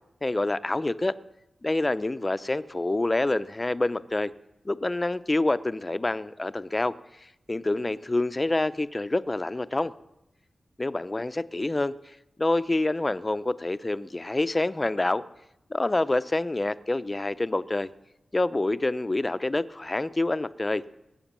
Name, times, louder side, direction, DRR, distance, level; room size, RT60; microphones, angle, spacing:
voice 1, 0.2-1.2 1.6-4.3 4.7-7.0 7.5-9.9 10.8-11.9 12.4-15.2 15.7-17.9 18.3-20.8, left 2 dB, 25° left, 14 dB, 0.4 m, -27 dB
20.0 x 7.8 x 7.4 m, 0.88 s
wide cardioid pair, 115°, 0 cm